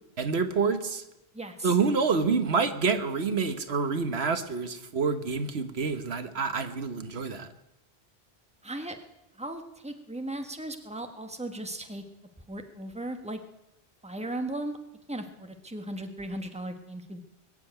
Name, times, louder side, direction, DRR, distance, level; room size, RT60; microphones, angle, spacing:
voice 1, 0.2-1.0 1.6-7.5, right 5 dB, 75° right, 9 dB, 1.4 m, -27 dB
voice 2, 1.3-1.8 8.6-9.0 9.4-12.0 12.5-13.4 14.0-14.8 15.1-17.2, right 1 dB, 5° right, 6 dB, 1.3 m, -37 dB
21.5 x 7.7 x 8.8 m, 0.88 s
omnidirectional pair, 1.1 m